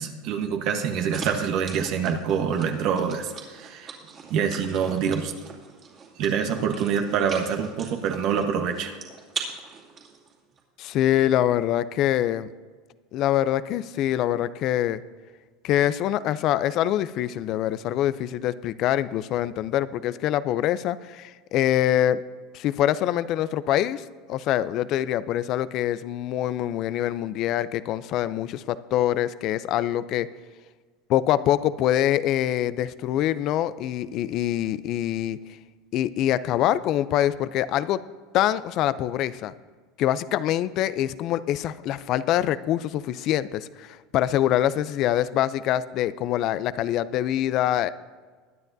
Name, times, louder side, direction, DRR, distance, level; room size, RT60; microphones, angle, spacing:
voice 1, 0.0-3.9 4.3-5.3 6.2-9.0, right 7 dB, 55° right, 5 dB, 1.1 m, -26 dB
sound 1, 1.1-10.6, right 5 dB, 35° right, 2.5 m, -41 dB
voice 2, 10.8-12.5 13.1-15.0 15.6-22.2 22.5-24.0 24.3-30.3 31.1-35.4 35.9-38.0 38.3-39.5 40.0-47.9, left 12 dB, 50° left, 16 dB, 0.5 m, -24 dB
21.5 x 9.7 x 2.7 m, 1.5 s
supercardioid pair, 125°, 0 cm